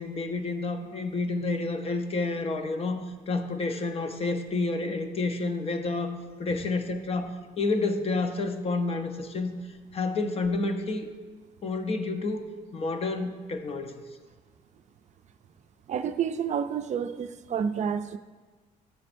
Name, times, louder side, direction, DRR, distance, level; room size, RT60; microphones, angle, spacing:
voice 1, 0.0-6.1 6.4-9.5 9.9-11.1 11.6-12.4 12.7-13.9, left 3 dB, 35° left, 7 dB, 0.9 m, -29 dB
voice 2, 15.9-18.2, right 7 dB, 45° right, 10 dB, 0.5 m, -29 dB
13.0 x 7.4 x 2.6 m, 1.4 s
cardioid pair, 110°, 17 cm